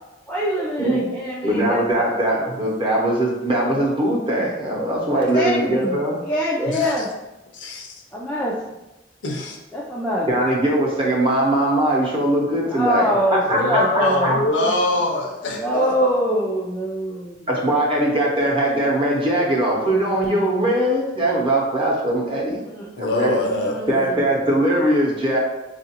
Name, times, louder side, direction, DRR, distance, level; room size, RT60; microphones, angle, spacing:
voice 1, 0.3-2.1 5.1-7.1 8.1-8.6 9.7-10.3 12.7-14.3 15.5-17.5 22.6-22.9 23.1-24.4, equal, 10° left, -6 dB, 0.3 m, -24 dB
voice 2, 1.4-6.2 10.3-14.4 17.5-22.6 23.0-23.4 23.9-25.4, right 1 dB, 30° right, -3 dB, 0.8 m, -21 dB
voice 3, 7.5-7.9 9.2-9.6 13.5-15.9 23.0-23.8, left 2 dB, 75° left, 1 dB, 0.7 m, -24 dB
4.6 x 2.5 x 2.8 m, 1.0 s
head